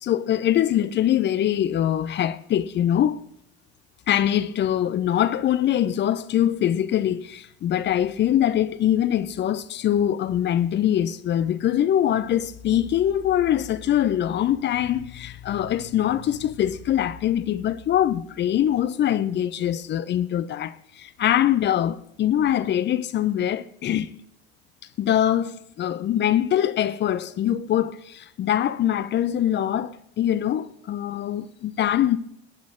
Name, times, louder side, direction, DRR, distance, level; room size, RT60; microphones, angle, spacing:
voice 1, 0.0-3.2 4.1-24.1 25.0-32.2, left 11 dB, 35° left, 0.7 m, -23 dB
18.0 x 10.5 x 3.7 m
figure-of-eight pair, 65°, 32 cm